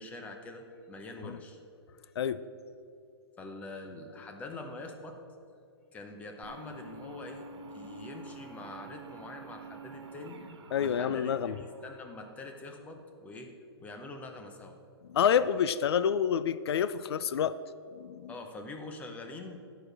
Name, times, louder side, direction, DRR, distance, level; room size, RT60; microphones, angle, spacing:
voice 1, 0.0-1.6 3.4-5.2 5.9-10.4 10.8-13.5 13.8-14.8 18.3-19.6, left 2 dB, 10° left, 4 dB, 0.7 m, -44 dB
sound 1, 6.4-12.8, right 3 dB, 85° right, 1.3 m, -48 dB
voice 2, 10.7-11.5 15.1-17.5 18.0-18.3, left 8 dB, 70° left, 15 dB, 0.5 m, -28 dB
12.0 x 5.0 x 6.2 m, 2.5 s
hypercardioid pair, 160°, 14 cm